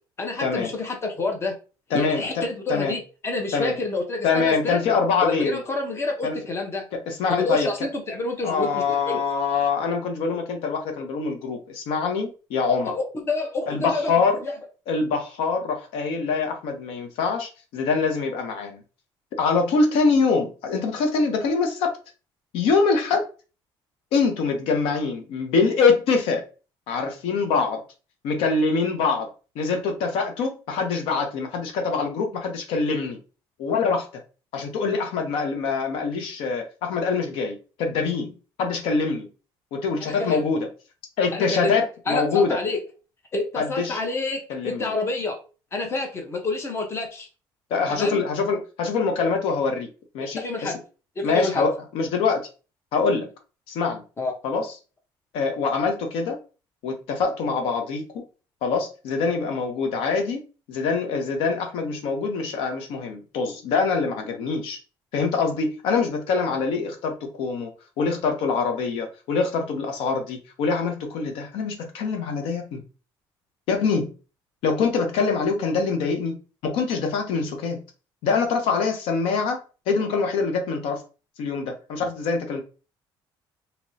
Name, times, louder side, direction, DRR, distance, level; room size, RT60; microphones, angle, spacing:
voice 1, 0.2-1.5 1.9-4.8 5.2-6.8 7.3-9.2 12.8-14.1 14.4-14.5 40.0-40.5 41.3-41.8 42.1-42.8 43.3-45.4 45.7-47.3 47.9-48.2 50.2-50.8 51.2-51.6 54.2-54.3, left 3 dB, 30° left, 3 dB, 0.9 m, -28 dB
voice 2, 1.9-2.4 2.7-2.9 3.5-3.7 4.2-5.6 6.2-6.4 7.1-7.7 8.4-13.0 13.7-14.4 14.9-18.8 19.4-21.9 22.5-23.3 24.1-26.4 26.9-27.8 28.2-33.2 33.6-34.1 34.5-38.3 38.6-39.3 39.7-40.7 41.2-42.6 43.6-44.0 44.5-44.9 47.7-49.9 50.1-50.7 51.2-52.5 52.9-53.3 53.7-54.0 54.4-54.7 55.3-56.4 56.8-58.0 58.6-60.4 60.7-64.8 65.1-67.7 68.0-72.8 73.7-74.1 74.6-76.4 76.6-77.8 78.2-79.6 79.9-81.0 81.4-82.6, left 4 dB, 85° left, 4 dB, 0.8 m, -24 dB
3.0 x 2.9 x 2.7 m, 0.34 s
cardioid pair, 120°, 9 cm